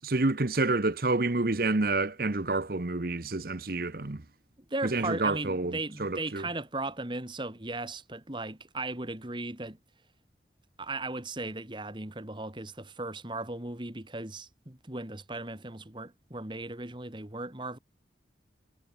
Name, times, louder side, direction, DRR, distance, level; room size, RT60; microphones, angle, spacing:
voice 1, 0.0-4.2 4.9-6.4, right 2 dB, 55° right, 1.0 m, -28 dB
voice 2, 4.7-9.8 10.8-17.8, right 2 dB, 25° right, 2.0 m, -37 dB
head